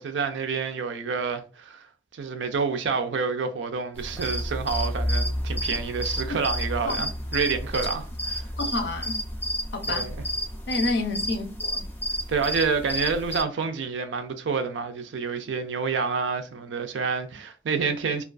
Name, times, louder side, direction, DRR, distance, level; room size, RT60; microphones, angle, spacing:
voice 1, 0.0-1.9 2.1-8.4 9.9-10.2 12.3-18.2, right 5 dB, 80° right, 0.4 m, -28 dB
sound 1, 4.0-13.4, equal, 10° left, 0.3 m, -30 dB
voice 2, 8.6-9.2 9.7-10.1 10.7-11.9, left 2 dB, 65° left, 0.5 m, -29 dB
2.3 x 2.3 x 2.3 m
head